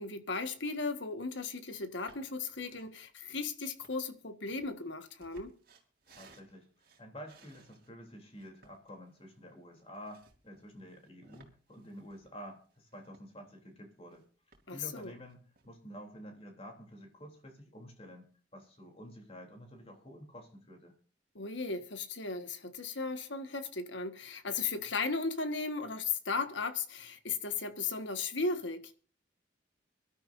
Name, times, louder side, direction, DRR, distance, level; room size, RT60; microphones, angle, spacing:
voice 1, 0.0-5.5 14.7-15.1 21.3-29.0, left 4 dB, 75° left, 1.5 m, -36 dB
sound 1, 1.7-1.8 2.1-2.9 3.5-7.9 8.3-13.6 13.8-14.2 14.5-15.7, right 3 dB, 50° right, 2.9 m, -62 dB
voice 2, 6.1-6.7 7.0-14.2 14.7-21.0, equal, 30° left, 3.2 m, -50 dB
24.0 x 12.5 x 2.6 m
head